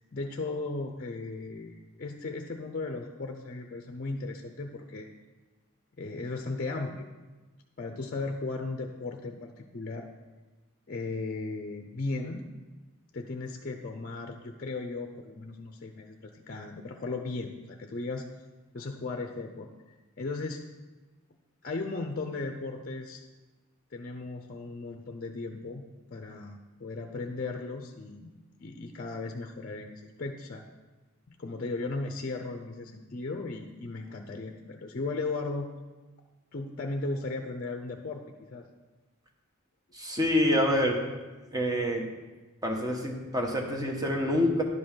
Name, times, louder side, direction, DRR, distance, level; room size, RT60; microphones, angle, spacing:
voice 1, 0.1-5.1 6.0-7.1 7.8-10.1 10.9-12.5 13.1-18.3 18.7-19.7 20.2-20.6 21.6-23.2 23.9-25.8 26.1-28.3 28.6-30.6 31.3-35.7 36.5-38.7, left 3 dB, 45° left, 5 dB, 0.6 m, -36 dB
voice 2, 39.9-41.0 41.5-42.1 42.6-44.6, left 1 dB, 20° right, 2 dB, 1.2 m, -26 dB
11.0 x 5.5 x 5.6 m, 1.2 s
head